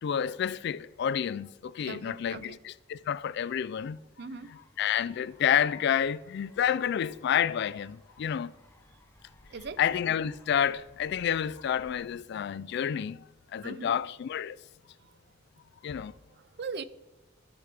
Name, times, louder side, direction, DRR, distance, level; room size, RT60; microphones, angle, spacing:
voice 1, 0.0-4.0 4.8-8.5 9.8-13.3 13.5-14.6 15.8-16.1, left 9 dB, 60° left, 0.3 m, -29 dB
voice 2, 1.8-2.6 4.2-4.6 9.5-9.8 13.6-14.0 15.0-15.1 16.0-16.8, right 4 dB, 60° right, 0.5 m, -41 dB
sound 1, 4.3-12.2, left 1 dB, 15° left, 0.7 m, -59 dB
14.5 x 5.2 x 3.3 m
head